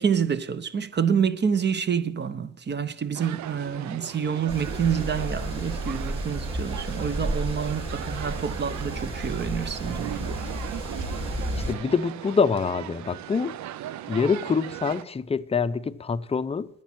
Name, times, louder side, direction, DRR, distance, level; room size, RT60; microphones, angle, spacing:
voice 1, 0.0-10.4, right 7 dB, 35° right, 0.8 m, -27 dB
sound 1, 3.1-15.0, right 12 dB, 70° right, 0.5 m, -38 dB
sound 2, 4.5-11.7, right 1 dB, 20° right, 4.0 m, -32 dB
voice 2, 11.5-13.6 14.1-16.7, left 5 dB, 20° left, 0.5 m, -25 dB
10.5 x 7.3 x 7.6 m
cardioid pair, 90°, 30 cm